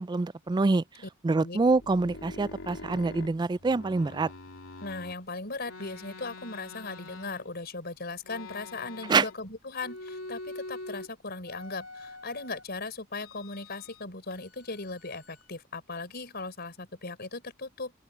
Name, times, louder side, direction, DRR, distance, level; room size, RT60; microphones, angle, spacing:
voice 1, 0.0-0.8 1.2-4.3 9.1-9.3, right 3 dB, 20° right, 0.3 m, -25 dB
sound 1, 1.6-5.2 5.6-7.7 8.2-9.5 9.8-11.1 11.4-12.6 13.2-14.0 14.3-15.5, left 2 dB, 85° left, 2.8 m, -45 dB
voice 2, 4.8-17.9, left 3 dB, 50° left, 4.6 m, -38 dB
open air
head